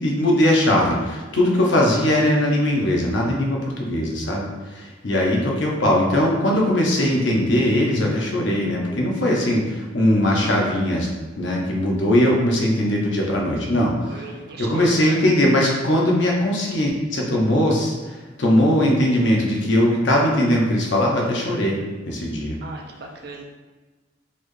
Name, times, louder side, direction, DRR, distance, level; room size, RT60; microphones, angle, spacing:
voice 1, 0.0-11.1 11.4-13.9 14.6-17.9 18.4-21.8 22.1-22.6, left 1 dB, 75° left, -1 dB, 0.7 m, -20 dB
voice 2, 14.0-15.2 22.6-23.4, right 2 dB, 55° right, 1 dB, 0.5 m, -36 dB
4.2 x 3.2 x 2.6 m, 1.3 s
head